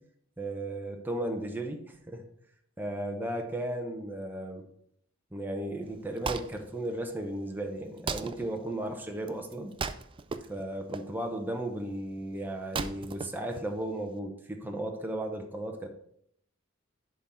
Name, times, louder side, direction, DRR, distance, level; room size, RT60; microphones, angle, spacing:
voice 1, 0.4-2.2 2.8-4.6 5.3-9.7 10.5-15.9, right 1 dB, 10° right, 2 dB, 0.7 m, -35 dB
Wood, 5.8-14.2, right 5 dB, 25° right, 0.4 m, -39 dB
11.0 x 3.7 x 4.3 m, 0.68 s
head